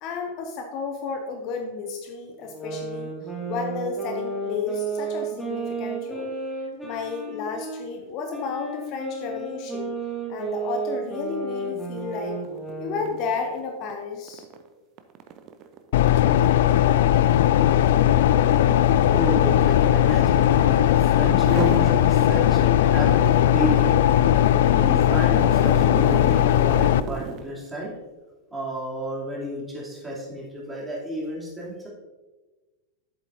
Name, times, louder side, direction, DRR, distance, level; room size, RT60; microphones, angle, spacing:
voice 1, 0.0-6.3 6.8-9.9 10.3-12.4 12.8-14.4, left 5 dB, 40° left, 4 dB, 0.8 m, -32 dB
sound 1, 2.4-7.8 8.3-13.2, right 3 dB, 10° left, 2.0 m, -32 dB
sound 2, 11.9-12.1 12.4-20.9 21.3-21.9 22.4-27.5, right 7 dB, 35° right, 0.7 m, -38 dB
sound 3, 15.9-27.0, left 11 dB, 55° left, 0.3 m, -18 dB
voice 2, 18.5-27.9 28.5-31.9, equal, 10° right, -5 dB, 3.0 m, -31 dB
10.5 x 8.2 x 2.7 m, 1.2 s
figure-of-eight pair, 90°, 0 cm